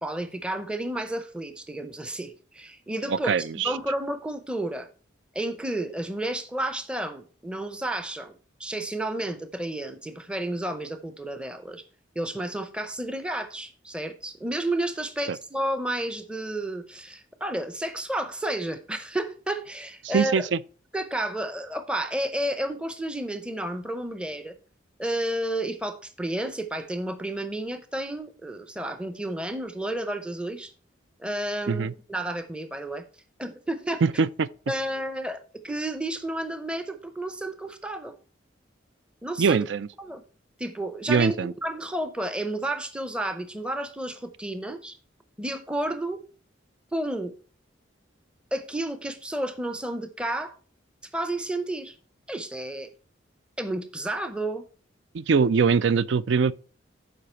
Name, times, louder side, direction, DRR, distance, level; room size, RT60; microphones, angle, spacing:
voice 1, 0.0-4.9 5.3-8.3 8.6-11.8 12.2-20.5 20.9-24.5 25.0-30.7 31.2-33.0 33.4-34.0 34.7-35.4 35.6-38.2 39.2-39.6 40.0-40.2 40.6-41.3 41.6-45.0 45.4-46.2 46.9-47.3 48.5-50.5 51.1-52.0 52.3-52.9 53.6-54.6, right 1 dB, 5° right, 0.6 m, -31 dB
voice 2, 3.1-3.7 15.3-15.4 20.0-20.6 31.7-31.9 34.0-34.5 39.4-39.9 41.1-41.5 55.1-56.5, right 5 dB, 70° right, 0.4 m, -22 dB
12.0 x 4.9 x 4.4 m
head